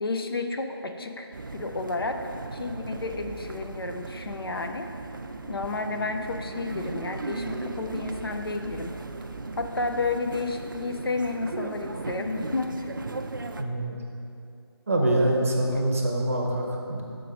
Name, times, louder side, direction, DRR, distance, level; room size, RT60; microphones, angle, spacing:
voice 1, 0.0-4.9 5.5-8.9 9.6-12.9 15.5-15.8, left 3 dB, 60° left, 5 dB, 0.5 m, -31 dB
sound 1, 1.3-13.6, right 3 dB, 50° right, 0.4 m, -37 dB
voice 2, 13.6-13.9 14.9-17.0, right 1 dB, 30° right, -1 dB, 0.7 m, -25 dB
6.3 x 4.6 x 4.9 m, 2.6 s
figure-of-eight pair, 165°, 14 cm